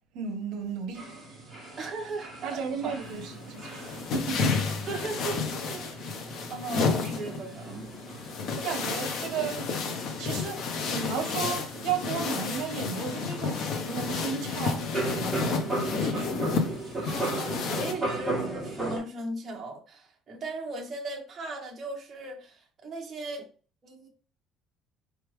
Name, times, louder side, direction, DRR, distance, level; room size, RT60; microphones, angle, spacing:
voice 1, 0.1-1.4 2.4-4.6 8.5-9.7 10.2-15.4 16.0-16.5, right 6 dB, 65° right, 0.8 m, -34 dB
sound 1, 0.9-19.0, right 2 dB, 5° right, 1.7 m, -38 dB
voice 2, 1.8-2.9 4.9-6.0 6.5-7.8 17.1-23.5 23.8-24.1, right 2 dB, 25° right, 1.0 m, -37 dB
sound 2, 3.0-17.9, left 5 dB, 50° left, 0.7 m, -31 dB
4.6 x 3.4 x 3.1 m
cardioid pair, 180°, 0 cm